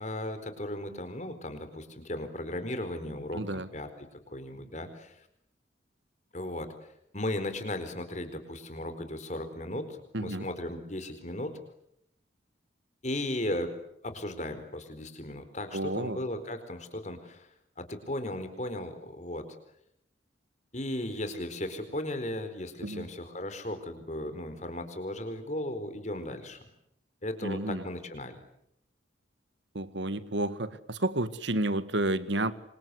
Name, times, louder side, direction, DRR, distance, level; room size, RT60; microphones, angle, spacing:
voice 1, 0.0-3.9 4.3-5.2 6.3-6.9 7.1-11.5 13.0-13.7 14.0-17.5 17.8-19.4 20.7-26.6 27.2-28.4, left 1 dB, 40° left, 9 dB, 4.5 m, -36 dB
voice 2, 3.3-3.7 10.1-10.5 15.7-16.2 22.8-23.1 27.4-27.8 29.7-32.5, right 1 dB, 70° right, 13 dB, 1.8 m, -31 dB
28.0 x 25.5 x 8.3 m, 0.76 s
head